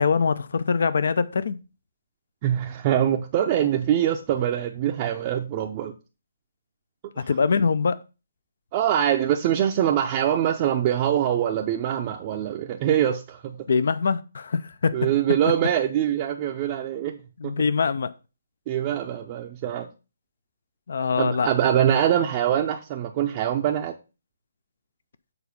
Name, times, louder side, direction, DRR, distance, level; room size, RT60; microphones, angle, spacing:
voice 1, 0.0-1.6 7.3-8.0 13.7-15.0 17.4-18.1 20.9-21.5, left 5 dB, 60° left, 0.5 m, -23 dB
voice 2, 2.4-5.9 7.2-7.3 8.7-13.6 14.9-17.2 17.4-17.5 18.7-19.9 21.2-23.9, right 10 dB, 30° right, 0.6 m, -24 dB
7.0 x 4.1 x 5.4 m
figure-of-eight pair, 140°, 0 cm